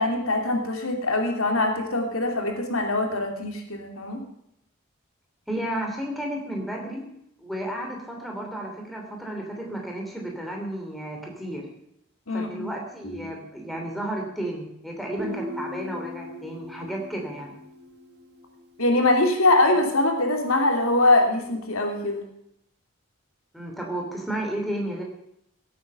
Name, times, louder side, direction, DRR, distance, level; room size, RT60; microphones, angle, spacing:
voice 1, 0.0-4.2 12.3-12.7 13.0-13.3 18.8-22.2, left 2 dB, 85° left, 2 dB, 2.8 m, -23 dB
voice 2, 5.5-7.0 7.4-11.7 12.3-17.5 23.5-25.0, right 1 dB, ahead, 0 dB, 3.0 m, -32 dB
Guitar, 15.2-18.8, left 2 dB, 50° right, 2.3 m, -39 dB
17.0 x 8.6 x 6.8 m, 0.77 s
head